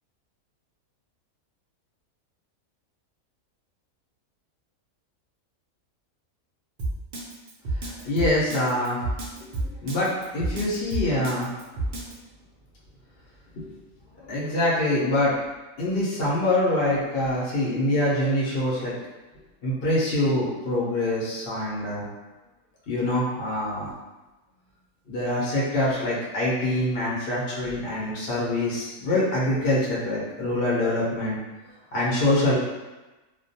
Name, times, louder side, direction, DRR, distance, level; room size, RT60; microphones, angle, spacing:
Drum kit, 6.8-12.1, right 2 dB, 75° right, 0.4 m, -29 dB
voice 1, 7.8-9.0 9.8-11.5 13.6-13.7 14.3-15.3 15.8-18.9 19.6-22.1 22.9-23.9 25.1-31.4 31.9-32.6, left 1 dB, 50° left, -7 dB, 0.8 m, -25 dB
2.3 x 2.2 x 2.7 m, 1.1 s
omnidirectional pair, 1.5 m